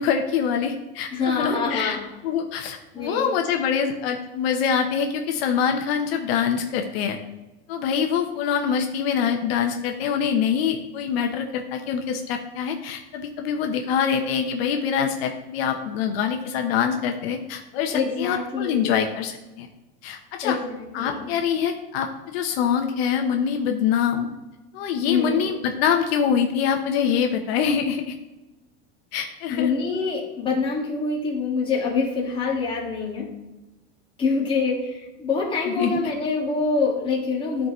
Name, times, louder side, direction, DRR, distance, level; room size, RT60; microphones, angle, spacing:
voice 1, 0.0-2.0 2.2-7.2 7.7-19.7 20.0-20.6 20.9-24.3 24.7-28.2 29.1-29.7 35.7-36.0, left 7 dB, 70° left, 4 dB, 0.9 m, -24 dB
voice 2, 1.1-2.0 2.9-3.3 17.9-19.0 20.4-21.3 25.0-25.5 29.5-33.3 34.2-37.7, left 4 dB, 15° left, -4 dB, 1.9 m, -25 dB
12.5 x 4.7 x 3.0 m, 1.1 s
supercardioid pair, 150°, 31 cm